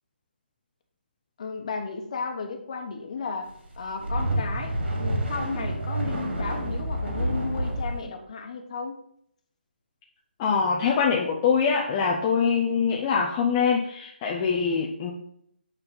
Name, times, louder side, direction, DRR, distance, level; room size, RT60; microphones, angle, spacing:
voice 1, 1.4-9.0, left 4 dB, 35° left, 4 dB, 1.1 m, -34 dB
sound 1, 3.7-8.0, right 1 dB, 75° right, 3.4 m, -28 dB
voice 2, 10.4-15.1, left 6 dB, 15° left, -2 dB, 0.4 m, -24 dB
8.3 x 4.0 x 5.2 m, 0.69 s
hypercardioid pair, 170°, 6 cm